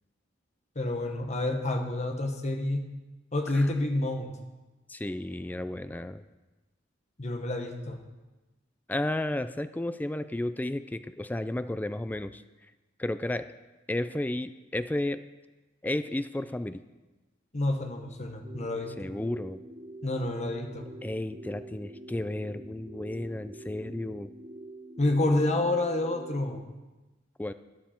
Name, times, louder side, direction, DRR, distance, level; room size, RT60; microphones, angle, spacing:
voice 1, 0.7-2.9 3.3-4.4 7.2-8.0 17.5-19.1 20.0-20.8 25.0-26.6, left 2 dB, 35° left, 4 dB, 1.2 m, -29 dB
voice 2, 4.9-6.2 8.9-12.4 13.0-13.5 13.9-15.2 15.8-16.8 19.0-19.6 21.0-24.3 27.4-27.5, left 1 dB, 10° left, 12 dB, 0.3 m, -33 dB
sound 1, 18.4-26.6, right 1 dB, 30° right, 0.8 m, -46 dB
12.5 x 11.0 x 4.4 m, 1.1 s
head